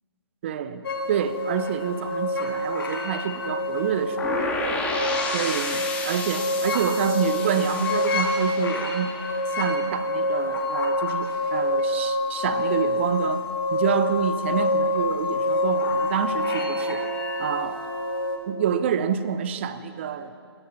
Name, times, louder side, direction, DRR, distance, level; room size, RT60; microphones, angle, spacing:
voice 1, 0.4-4.3 5.3-9.1 9.5-13.4 13.7-17.0 17.4-17.8 18.5-20.4, right 8 dB, 25° right, 12 dB, 0.6 m, -28 dB
sound 1, 0.8-18.4, left 1 dB, 55° left, 2.5 m, -27 dB
sound 2, 4.2-10.0, left 3 dB, 10° left, 1.1 m, -32 dB
19.5 x 14.5 x 4.3 m, 2.4 s
figure-of-eight pair, 145°, 14 cm